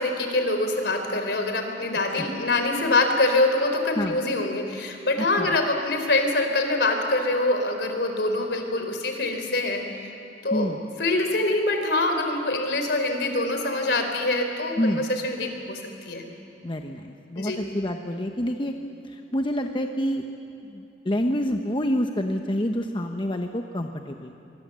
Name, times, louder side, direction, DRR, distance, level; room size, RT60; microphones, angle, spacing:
voice 1, 0.0-10.0 10.4-10.7 11.0-16.2 17.4-17.6, left 2 dB, 70° left, 5 dB, 3.5 m, -25 dB
voice 2, 5.2-5.6 10.5-10.8 14.8-15.0 16.6-18.8 19.1-20.2 20.6-24.4, equal, 30° left, 4 dB, 1.0 m, -27 dB
24.5 x 24.5 x 7.6 m, 2.7 s
head